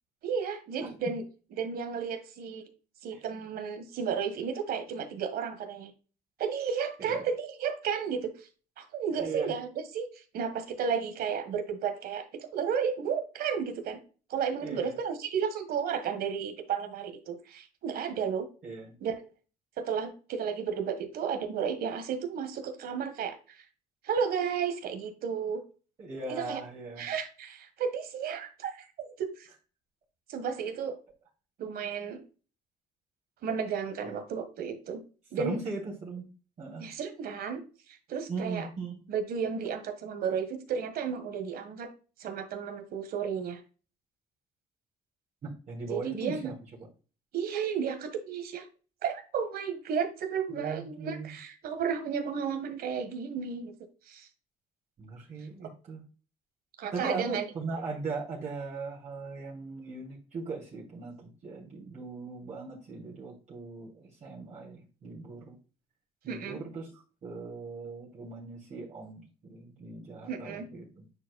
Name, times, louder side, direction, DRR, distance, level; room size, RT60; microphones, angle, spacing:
voice 1, 0.2-1.2 1.6-2.6 3.0-5.9 6.4-8.5 8.8-10.1 10.3-14.0 14.3-18.5 19.0-19.2 19.8-23.6 24.0-25.6 26.3-26.6 27.0-29.5 30.3-31.0 31.6-32.2 33.4-35.0 35.3-35.6 36.8-37.6 38.1-38.7 39.1-41.9 42.2-43.6 45.9-46.5 47.3-48.6 49.0-53.7 54.1-54.3 55.6-55.7 56.8-57.4 66.3-66.6 70.3-70.7, right 7 dB, 65° right, 8 dB, 1.6 m, -33 dB
voice 2, 9.1-9.5 14.6-14.9 18.6-18.9 26.0-27.1 34.0-34.2 35.4-36.2 36.6-36.8 38.3-38.9 45.4-46.5 50.5-51.3 55.0-56.0 56.9-65.6 66.2-69.2 69.5-70.9, right 4 dB, 45° right, -5 dB, 2.8 m, -39 dB
9.7 x 4.6 x 2.3 m, 0.35 s
cardioid pair, 110°, 17 cm